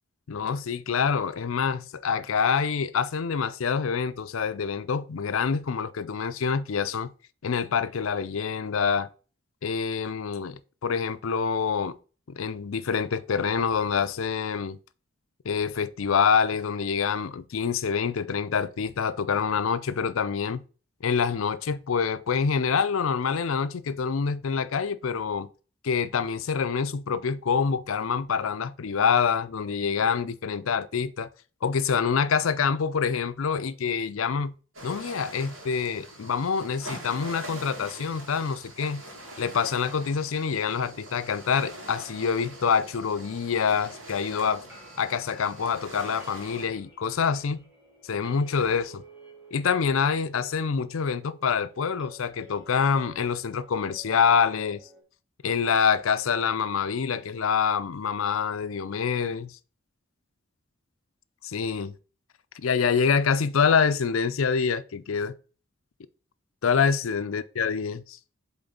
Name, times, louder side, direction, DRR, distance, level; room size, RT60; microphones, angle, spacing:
voice 1, 0.3-7.1 7.4-9.1 9.6-12.0 12.3-14.8 15.4-20.6 21.0-25.5 25.8-31.3 31.6-34.5 34.8-39.0 39.4-44.6 45.0-47.6 48.0-49.0 49.5-54.8 55.4-59.5 61.4-61.9 62.5-65.3 66.6-68.2, left 6 dB, 85° left, 0.5 m, -26 dB
sound 1, 34.7-46.7, right 1 dB, 75° right, 2.5 m, -43 dB
sound 2, 44.3-55.0, right 2 dB, 5° right, 2.7 m, -53 dB
7.9 x 3.8 x 3.9 m
head